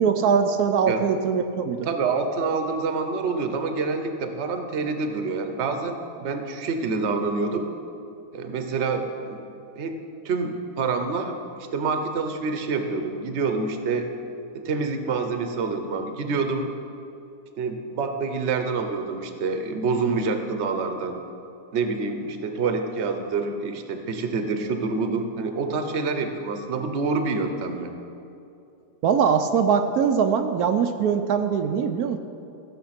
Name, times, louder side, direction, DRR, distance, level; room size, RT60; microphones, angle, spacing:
voice 1, 0.0-1.9 29.0-32.2, right 6 dB, 80° right, 6 dB, 1.1 m, -22 dB
voice 2, 1.8-7.7 8.3-9.4 9.8-10.0 10.2-11.3 11.7-14.1 14.5-16.7 17.6-21.2 21.7-27.9, right 4 dB, 50° right, 6 dB, 1.1 m, -27 dB
15.0 x 7.0 x 5.9 m, 2.7 s
omnidirectional pair, 1.6 m